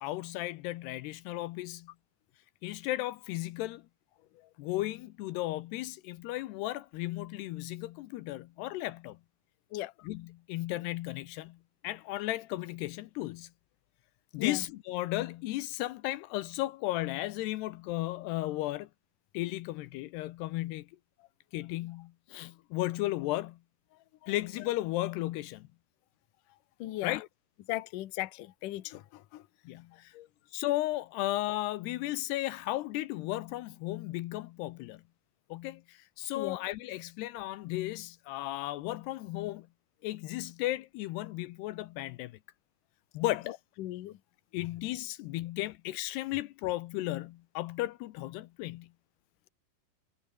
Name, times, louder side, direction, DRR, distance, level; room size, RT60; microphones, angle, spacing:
voice 1, 0.0-1.9 2.6-3.9 4.6-9.2 10.0-11.6 11.8-13.5 14.3-18.9 19.3-20.9 21.5-23.6 24.2-25.7 27.0-27.3 29.6-30.1 30.5-35.0 35.5-39.7 40.0-42.4 43.1-43.6 44.5-48.9, left 17 dB, 85° left, 2.8 m, -35 dB
voice 2, 26.8-27.2 27.7-29.5 30.1-30.3 36.3-36.6 43.8-44.2, left 16 dB, 65° left, 2.3 m, -37 dB
omnidirectional pair, 4.9 m